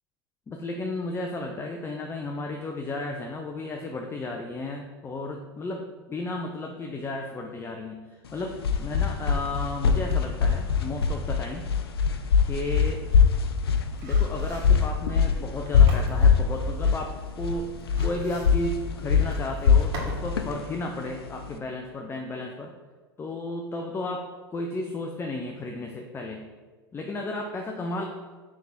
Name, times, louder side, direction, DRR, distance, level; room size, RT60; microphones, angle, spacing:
voice 1, 0.5-5.8 6.1-11.7 12.4-13.0 14.0-17.7 18.0-22.7 23.2-26.4 26.9-28.1, left 2 dB, 20° left, 3 dB, 0.6 m, -33 dB
sound 1, 8.3-21.6, left 6 dB, 90° left, 0.6 m, -23 dB
sound 2, 12.9-20.3 20.6-20.7, right 2 dB, 55° right, 1.9 m, -44 dB
6.1 x 3.6 x 5.8 m, 1.4 s
hypercardioid pair, 100°, 13 cm